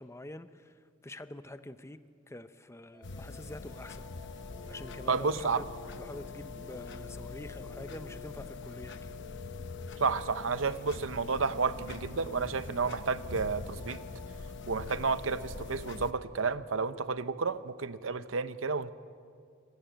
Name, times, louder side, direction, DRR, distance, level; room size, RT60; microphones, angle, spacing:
voice 1, 0.0-2.0 2.3-4.1 4.7-5.7 6.0-9.2, left 1 dB, 15° left, 11 dB, 0.7 m, -46 dB
sound 1, 2.9-14.2, left 4 dB, 25° right, 6.3 m, -59 dB
sound 2, 3.0-16.1, left 3 dB, 60° left, 0.9 m, -43 dB
sound 3, 4.4-5.0 5.5-6.0 6.5-7.0 7.5-8.0 9.1-10.8, left 5 dB, 40° right, 6.9 m, -52 dB
voice 2, 5.1-5.6 10.0-14.0 14.7-18.9, right 4 dB, 70° right, 13 dB, 0.8 m, -31 dB
25.5 x 15.0 x 9.1 m, 2.3 s
head